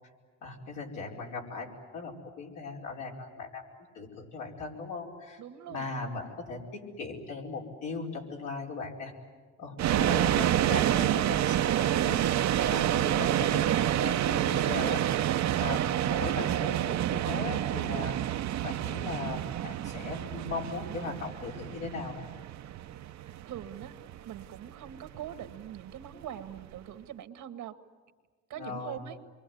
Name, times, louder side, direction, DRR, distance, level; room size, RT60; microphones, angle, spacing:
voice 1, 0.4-3.6 3.9-5.4 5.7-9.1 9.6-12.2 12.7-15.0 15.6-18.2 18.6-22.3 28.5-29.0, left 4 dB, 85° left, -2 dB, 5.1 m, -38 dB
voice 2, 5.4-5.9 23.5-23.9 24.2-27.7 28.5-29.2, right 10 dB, 85° right, 8 dB, 1.7 m, -42 dB
sound 1, 9.8-26.8, right 12 dB, 65° right, 0.7 m, -28 dB
27.5 x 23.0 x 9.3 m, 1.5 s
cardioid pair, 90°, 30 cm